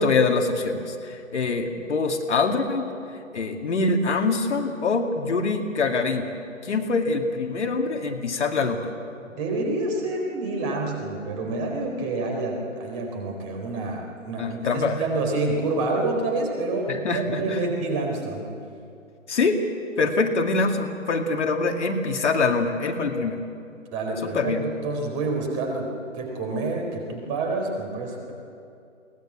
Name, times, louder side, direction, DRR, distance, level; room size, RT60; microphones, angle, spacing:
voice 1, 0.0-2.9 3.3-6.3 6.6-8.9 14.4-15.0 16.9-17.6 19.3-19.6 20.0-23.4 24.2-24.6, left 3 dB, 60° left, 3 dB, 2.4 m, -24 dB
voice 2, 9.3-18.4 23.9-24.5 24.8-28.3, right 2 dB, 25° right, 2 dB, 4.2 m, -28 dB
22.0 x 19.0 x 8.7 m, 2.5 s
figure-of-eight pair, 145°, 39 cm